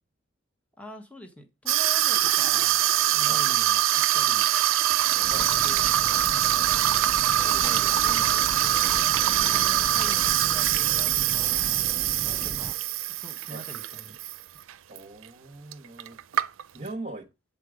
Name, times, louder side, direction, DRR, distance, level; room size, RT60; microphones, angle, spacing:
voice 1, 0.8-4.5 5.4-5.8 6.3-7.0 9.2-11.9 12.4-12.8 13.1-14.2, equal, 5° left, 1.1 m, -44 dB
Water tap faucet / Sink (filling or washing), 1.7-14.4 14.7-15.0 15.7-15.8 16.0-16.9, right 13 dB, 80° right, 0.5 m, -23 dB
sound 1, 5.1-12.7, right 1 dB, 15° right, 0.4 m, -39 dB
voice 2, 5.3-5.7 7.5-8.4 12.2-12.5 13.5-13.7 14.9-16.2 16.7-17.3, right 2 dB, 35° right, 1.1 m, -41 dB
8.3 x 4.1 x 4.9 m
head